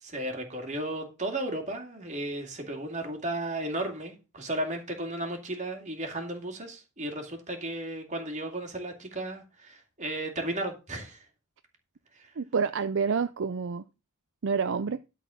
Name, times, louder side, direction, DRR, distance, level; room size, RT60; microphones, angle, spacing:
voice 1, 0.0-11.3 12.1-12.3, right 1 dB, 35° right, 2.4 m, -34 dB
voice 2, 12.4-13.8 14.4-15.0, right 5 dB, 55° right, 0.5 m, -28 dB
12.0 x 4.2 x 7.0 m
head